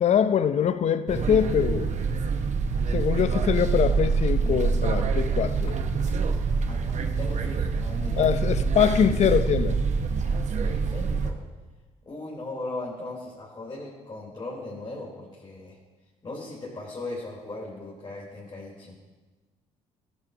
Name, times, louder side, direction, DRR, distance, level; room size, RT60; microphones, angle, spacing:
voice 1, 0.0-2.0 2.9-5.9 8.2-9.8, left 8 dB, 50° left, 12 dB, 0.7 m, -23 dB
sound 1, 1.1-11.3, right 4 dB, 50° right, 1.0 m, -26 dB
voice 2, 6.7-8.4 8.8-9.0 10.2-11.4 12.1-15.8 16.2-19.0, left 2 dB, 30° left, -7 dB, 4.1 m, -38 dB
14.5 x 11.0 x 2.9 m, 1.3 s
hypercardioid pair, 60°, 15 cm